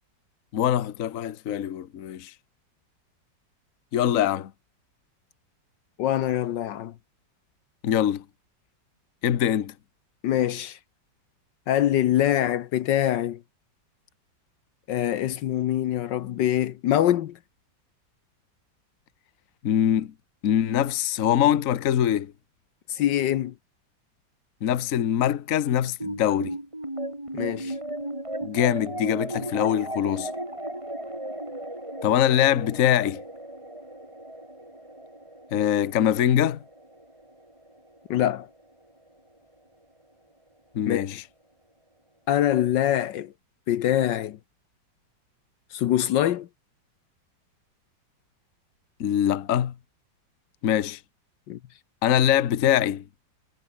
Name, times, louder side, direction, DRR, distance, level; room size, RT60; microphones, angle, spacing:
voice 1, 0.5-2.3 3.9-4.5 7.8-8.2 9.2-9.7 19.6-20.1 20.4-22.3 24.6-26.6 28.4-30.3 32.0-33.2 35.5-36.6 40.7-41.2 49.0-49.7 50.6-51.0 52.0-53.0, left 10 dB, 50° left, 1.2 m, -23 dB
voice 2, 6.0-6.9 10.2-10.8 11.7-13.4 14.9-17.4 22.9-23.5 27.3-27.8 38.1-38.5 40.9-41.2 42.3-43.3 43.7-44.4 45.7-46.5 51.5-51.6, left 12 dB, 70° left, 1.4 m, -24 dB
sound 1, 26.0-38.6, right 1 dB, 15° right, 5.0 m, -36 dB
omnidirectional pair, 2.0 m